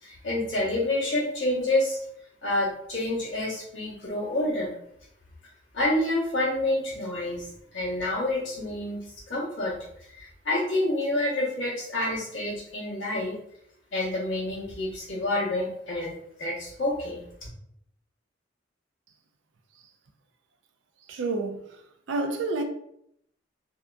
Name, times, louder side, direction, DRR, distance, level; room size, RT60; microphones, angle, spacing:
voice 1, 0.0-2.0 2.4-4.7 5.7-9.0 9.3-9.7 10.1-13.4 13.9-17.2, left 1 dB, 75° left, 1.0 m, -28 dB
voice 2, 21.0-21.8 22.1-22.6, right 3 dB, 75° right, 0.4 m, -29 dB
2.7 x 2.3 x 2.2 m
head